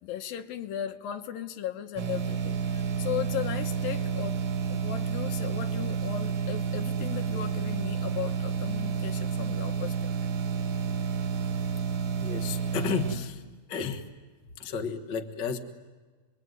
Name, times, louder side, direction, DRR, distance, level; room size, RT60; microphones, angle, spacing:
voice 1, 0.0-4.4 4.7-9.9, left 10 dB, 75° left, 8 dB, 2.7 m, -36 dB
sound 1, 2.0-13.2, right 6 dB, 50° right, 1.6 m, -30 dB
voice 2, 12.2-13.4 13.7-14.0 14.6-15.6, left 6 dB, 60° left, 6 dB, 1.1 m, -32 dB
27.5 x 22.0 x 9.4 m, 1.4 s
omnidirectional pair, 4.2 m